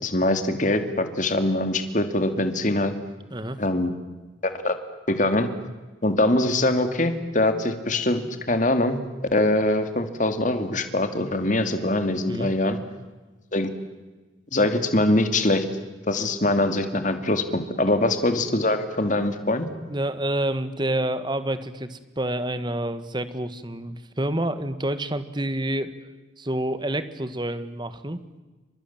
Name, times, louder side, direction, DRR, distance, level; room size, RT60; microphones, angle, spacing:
voice 1, 0.0-2.9 3.6-3.9 4.4-4.8 5.1-5.5 6.0-9.0 9.3-12.8 13.5-13.7 14.5-15.6 16.1-19.7, left 1 dB, 40° left, 8 dB, 2.5 m, -23 dB
voice 2, 3.3-3.6 12.3-12.5 19.9-25.9 26.4-28.2, right 1 dB, 25° right, 12 dB, 1.6 m, -28 dB
29.5 x 25.5 x 7.4 m, 1.2 s
head